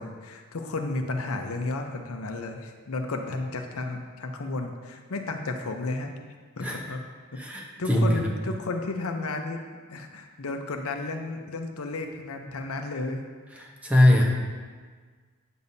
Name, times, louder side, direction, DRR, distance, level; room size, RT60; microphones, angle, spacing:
voice 1, 0.0-6.1 6.6-7.0 7.3-7.4 7.8-9.6 9.9-13.3, left 2 dB, 80° left, 4 dB, 0.7 m, -33 dB
voice 2, 7.4-8.2 13.6-14.2, left 1 dB, 5° right, -2 dB, 0.8 m, -21 dB
9.2 x 6.9 x 2.7 m, 1.5 s
head